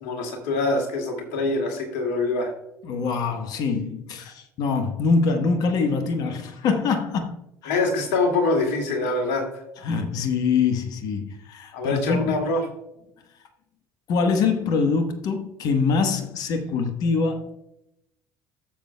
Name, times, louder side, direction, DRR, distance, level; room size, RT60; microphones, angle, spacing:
voice 1, 0.0-2.5 7.7-9.4 11.7-12.6, left 3 dB, 70° left, 2.2 m, -24 dB
voice 2, 2.8-7.4 7.6-7.8 9.8-12.3 14.1-17.5, left 4 dB, 55° left, 1.1 m, -24 dB
15.0 x 7.2 x 2.2 m
hypercardioid pair, 60°, 8 cm